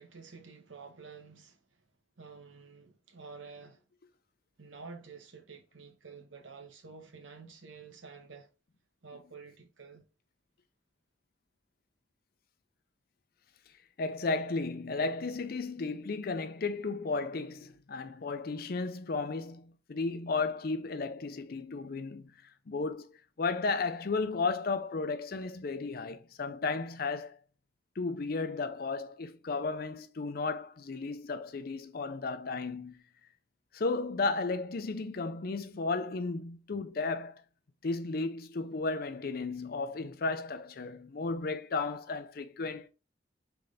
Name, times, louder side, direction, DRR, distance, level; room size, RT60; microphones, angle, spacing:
voice 1, 0.0-1.6 2.2-3.8 4.6-8.5 9.0-10.1, right 4 dB, 85° right, 1.0 m, -50 dB
voice 2, 14.0-22.3 22.7-23.1 23.4-27.4 28.0-33.0 33.7-37.4 37.8-42.9, left 3 dB, 50° left, 0.5 m, -34 dB
3.8 x 3.5 x 3.4 m
head